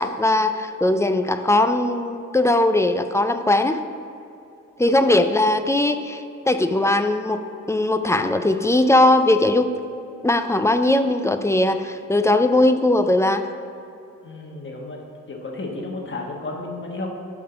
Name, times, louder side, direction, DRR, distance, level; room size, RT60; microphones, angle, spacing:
voice 1, 0.0-3.8 4.8-9.7 10.2-13.5, left 1 dB, 10° left, 8 dB, 0.4 m, -19 dB
voice 2, 14.2-15.0 15.3-17.1, left 2 dB, 35° left, 0 dB, 1.2 m, -32 dB
8.5 x 3.7 x 5.6 m, 2.7 s
cardioid pair, 80°, 32 cm